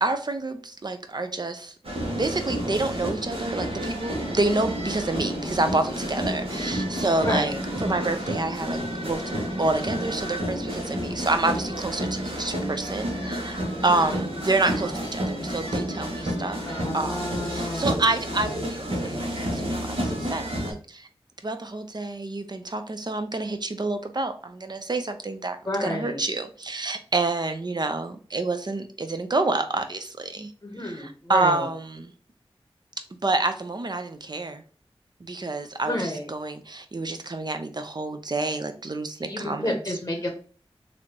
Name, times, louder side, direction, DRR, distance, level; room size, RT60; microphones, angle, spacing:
voice 1, 0.0-1.7 2.1-7.5 7.8-16.6 16.9-17.2 17.5-21.1 21.4-30.5 30.8-32.1 33.2-34.6 35.2-39.7, right 2 dB, 45° right, 8 dB, 0.6 m, -28 dB
sound 1, 1.8-20.7, equal, 65° right, 1.2 m, -30 dB
voice 2, 7.2-7.6 13.8-14.2 16.6-18.0 25.6-26.2 30.6-31.7 35.8-36.3 39.2-40.3, left 1 dB, 25° left, 2 dB, 0.8 m, -30 dB
3.3 x 2.6 x 2.8 m, 0.41 s
cardioid pair, 40°, 10 cm